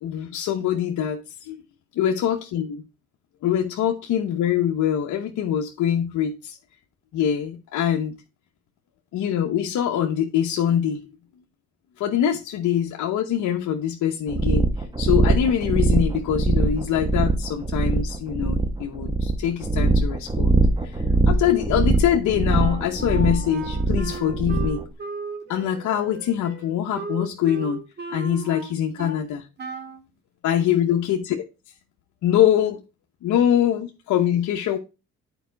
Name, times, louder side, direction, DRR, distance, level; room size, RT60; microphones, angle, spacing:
voice 1, 0.0-1.6 2.0-2.8 3.4-6.6 7.1-8.1 9.1-11.1 12.0-14.7 15.0-24.8 25.5-27.8 28.1-29.5 30.4-31.4 32.2-32.8 33.2-34.8, left 10 dB, 75° left, 0.9 m, -24 dB
sound 1, 14.3-24.8, right 2 dB, 15° right, 1.4 m, -22 dB
Wind instrument woodwind instrument, 22.5-29.3 29.6-30.0, right 4 dB, 35° right, 2.4 m, -36 dB
9.2 x 4.8 x 4.5 m
cardioid pair, 90°, 30 cm